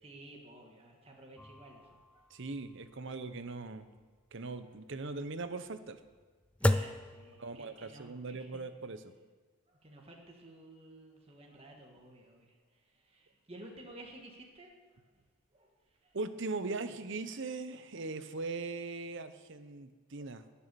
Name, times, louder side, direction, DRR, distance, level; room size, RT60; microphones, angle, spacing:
voice 1, 0.0-2.3 4.6-4.7 6.6-8.6 9.7-16.2 17.9-18.0 20.4-20.5, right 1 dB, 25° right, 0 dB, 1.6 m, -54 dB
sound 1, 1.4-8.0, left 1 dB, 5° left, 0.3 m, -37 dB
voice 2, 2.3-3.9 4.3-6.0 7.4-9.0 16.1-20.4, right 3 dB, 55° right, 10 dB, 0.9 m, -40 dB
19.5 x 7.0 x 6.9 m, 1.4 s
head